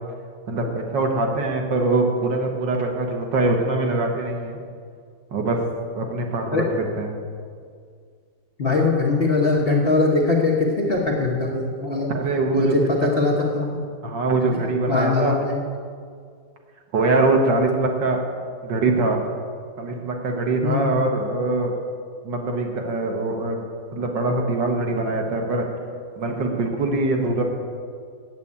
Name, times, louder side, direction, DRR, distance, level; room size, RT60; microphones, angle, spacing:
voice 1, 0.5-4.6 5.3-5.6 5.9-7.2 12.1-13.1 14.0-15.4 16.9-18.2 18.6-19.2 19.8-21.7 22.2-23.7 23.9-25.6 26.2-27.4, right 2 dB, 70° right, 2 dB, 1.9 m, -23 dB
voice 2, 8.6-12.1 12.5-13.8 14.9-15.6 20.6-21.0, left 3 dB, 40° left, -2 dB, 1.0 m, -21 dB
8.3 x 7.6 x 8.6 m, 2.1 s
omnidirectional pair, 2.1 m